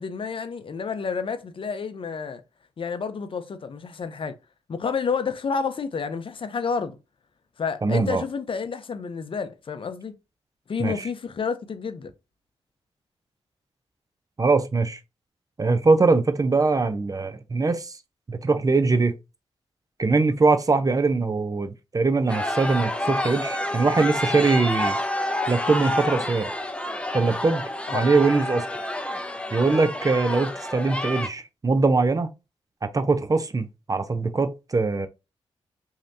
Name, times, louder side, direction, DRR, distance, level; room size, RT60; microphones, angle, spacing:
voice 1, 0.0-2.4 2.8-4.3 4.7-7.0 7.6-10.1 10.7-12.1 27.9-28.0, left 5 dB, 50° left, 0.6 m, -30 dB
voice 2, 7.8-8.2 10.8-11.1 14.4-15.0 15.6-17.9 18.3-19.1 20.0-25.0 25.5-26.5 27.1-27.6 27.9-28.7 29.5-32.3 32.8-35.1, right 3 dB, 30° right, 0.5 m, -22 dB
sound 1, 22.3-31.3, left 1 dB, 10° left, 0.6 m, -29 dB
3.1 x 2.8 x 2.6 m
cardioid pair, 50°, 11 cm